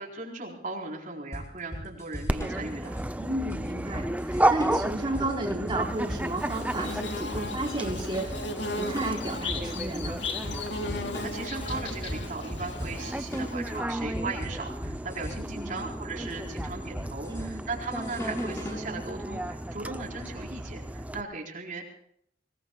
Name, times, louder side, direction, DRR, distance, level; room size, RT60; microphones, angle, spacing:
voice 1, 0.0-3.0 11.2-21.8, right 3 dB, 45° right, -1 dB, 4.2 m, -37 dB
sound 1, 1.3-18.9, equal, 15° left, 5.8 m, -39 dB
Dog, 2.3-21.2, right 1 dB, 10° right, 0.6 m, -33 dB
voice 2, 3.2-8.3 8.8-10.2 15.5-15.7 17.3-17.6, right 2 dB, 25° right, -2 dB, 4.4 m, -32 dB
Bird / Buzz, 6.0-13.7, left 3 dB, 80° left, 2.6 m, -37 dB
26.0 x 19.5 x 2.4 m, 0.67 s
head